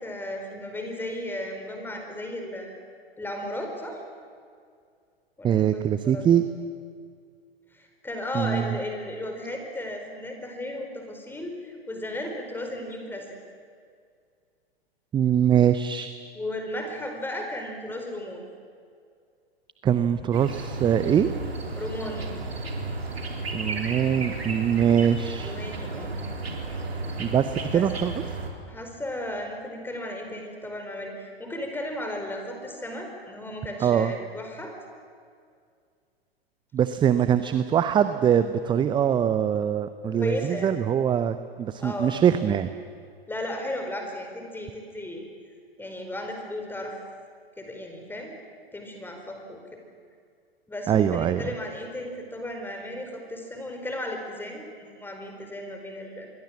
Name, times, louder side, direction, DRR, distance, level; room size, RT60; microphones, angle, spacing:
voice 1, 0.0-2.8 3.2-4.0 5.4-6.2 7.7-13.3 16.3-18.4 21.8-22.4 25.4-26.2 27.7-27.9 28.7-34.7 37.2-37.3 40.2-40.8 41.8-42.2 43.3-45.2 45.8-47.0 47.6-48.4 48.7-49.8 50.7-56.3, left 1 dB, 5° left, 3 dB, 4.6 m, -35 dB
voice 2, 5.4-6.4 8.3-8.8 15.1-16.1 19.8-21.3 23.5-25.6 27.2-28.1 33.8-34.1 36.7-42.7 50.9-51.5, right 9 dB, 15° right, 11 dB, 0.7 m, -23 dB
sound 1, 20.3-28.5, right 3 dB, 75° right, 3.8 m, -33 dB
27.0 x 22.5 x 7.4 m, 2.2 s
figure-of-eight pair, 105°, 31 cm